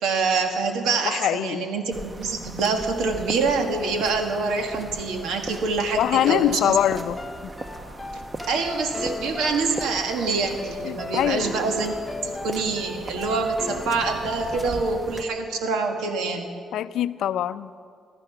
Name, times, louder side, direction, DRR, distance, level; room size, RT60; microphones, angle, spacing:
voice 1, 0.0-6.7 8.5-11.9 12.2-16.5, right 4 dB, 85° right, 4 dB, 1.7 m, -25 dB
voice 2, 1.0-1.7 6.0-7.2 10.8-11.5 16.7-17.7, left 11 dB, 80° left, 14 dB, 0.5 m, -23 dB
sound 1, 1.9-15.2, right 2 dB, 25° right, 0.9 m, -39 dB
sound 2, 6.2-15.1, left 2 dB, 15° left, 1.4 m, -36 dB
15.0 x 13.5 x 5.9 m, 2.2 s
cardioid pair, 90°, 0 cm